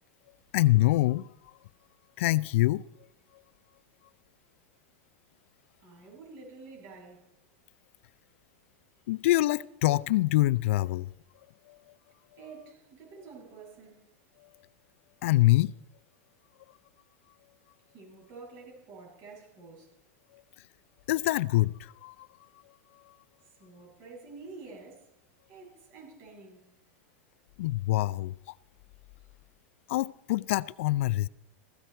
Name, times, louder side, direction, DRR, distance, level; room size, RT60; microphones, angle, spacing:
voice 1, 0.5-1.3 2.2-2.8 9.1-11.1 11.7-11.8 15.2-15.7 20.3-20.4 21.1-22.3 27.6-28.3 29.9-31.3, left 17 dB, 70° left, 0.5 m, -25 dB
voice 2, 5.8-7.2 12.4-14.1 17.9-19.9 23.6-25.1 25.5-26.7, right 4 dB, 45° right, 6.9 m, -49 dB
16.5 x 14.5 x 4.5 m
supercardioid pair, 130°, 7 cm